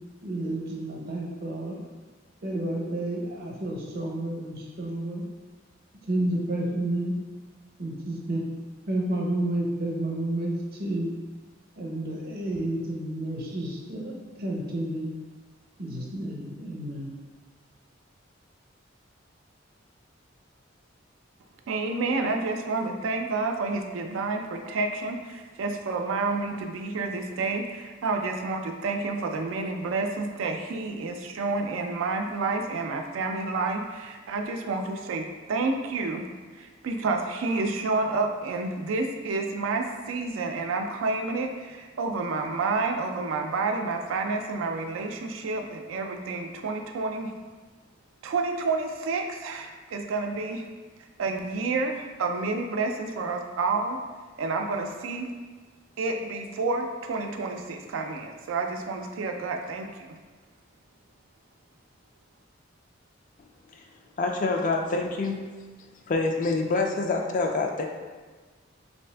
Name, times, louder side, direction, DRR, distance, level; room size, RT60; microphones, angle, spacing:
voice 1, 0.2-1.8 2.4-5.2 6.1-7.1 7.8-8.4 8.9-11.1 11.7-15.1 15.8-17.1, right 1 dB, 50° right, -2 dB, 0.7 m, -30 dB
voice 2, 21.7-36.2 36.6-47.3 48.2-50.7 51.2-54.0 54.4-55.3 56.0-60.2, right 3 dB, 85° right, 4 dB, 0.4 m, -29 dB
voice 3, 64.2-65.4 66.1-67.8, left 3 dB, 40° left, 3 dB, 0.4 m, -26 dB
3.3 x 2.7 x 3.3 m, 1.4 s
head